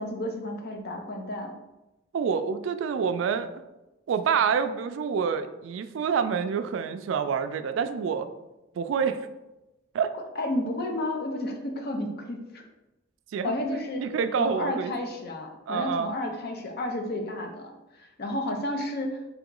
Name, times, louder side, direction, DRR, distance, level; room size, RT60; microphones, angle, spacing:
voice 1, 0.0-1.5 10.4-12.6 13.4-14.0 14.4-17.7 18.2-19.2, left 1 dB, 55° left, 3 dB, 0.6 m, -31 dB
voice 2, 2.1-3.6 4.1-8.3 8.8-9.3 9.9-10.1 13.3-13.6 14.0-14.9 15.7-16.1, right 6 dB, 75° right, 10 dB, 0.3 m, -27 dB
3.5 x 2.9 x 3.7 m, 1.0 s
head